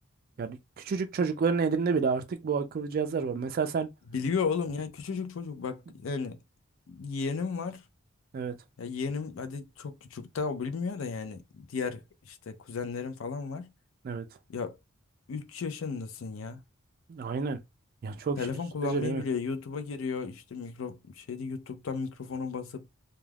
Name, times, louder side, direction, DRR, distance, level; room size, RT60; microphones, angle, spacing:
voice 1, 0.4-3.9 8.3-8.5 14.0-14.2 17.1-17.6 18.0-18.4 18.8-19.2, right 5 dB, 45° right, 0.3 m, -29 dB
voice 2, 4.1-6.4 6.9-7.8 8.8-13.7 14.5-14.8 15.3-16.6 18.4-22.9, left 5 dB, 65° left, 0.4 m, -34 dB
2.3 x 2.2 x 3.3 m
head